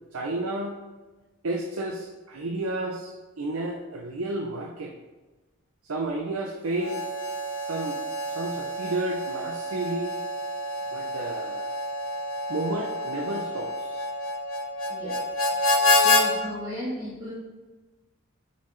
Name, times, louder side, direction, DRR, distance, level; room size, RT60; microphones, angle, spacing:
voice 1, 0.1-0.8 1.4-4.9 5.9-7.0 7.6-8.0 8.3-10.2 10.9-11.7 12.5-14.0, right 2 dB, 90° right, 1 dB, 0.7 m, -31 dB
Harmonica, 6.7-16.3, left 2 dB, 70° left, 1.0 m, -28 dB
voice 2, 14.9-15.2 15.9-17.3, equal, 20° right, -10 dB, 2.3 m, -35 dB
9.6 x 4.2 x 3.2 m, 1.2 s
head